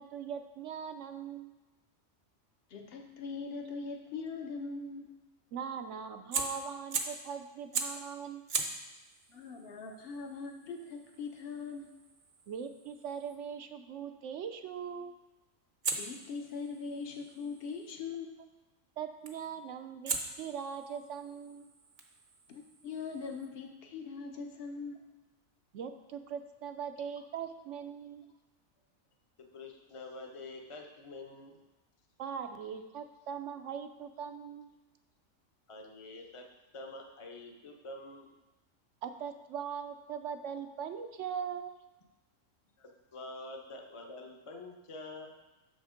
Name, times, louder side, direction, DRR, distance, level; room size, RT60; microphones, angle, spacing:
voice 1, 0.0-1.5 5.5-8.4 12.5-15.1 19.0-20.1 20.4-21.7 25.7-28.3 32.2-34.7 39.0-41.7, right 7 dB, 70° right, 8 dB, 0.9 m, -40 dB
voice 2, 2.7-5.1 9.3-11.9 15.9-18.3 22.5-25.0, left 4 dB, 50° left, 3 dB, 1.1 m, -41 dB
Fire, 6.2-7.3 7.7-8.1 8.5-13.4 15.8-17.9 19.2-19.5 20.1-23.5, right 4 dB, 45° right, 0.8 m, -40 dB
voice 3, 29.5-31.6 35.7-36.5 36.7-38.3 42.8-45.3, left 2 dB, 30° left, 2 dB, 0.8 m, -46 dB
6.7 x 6.3 x 5.0 m, 1.1 s
omnidirectional pair, 1.4 m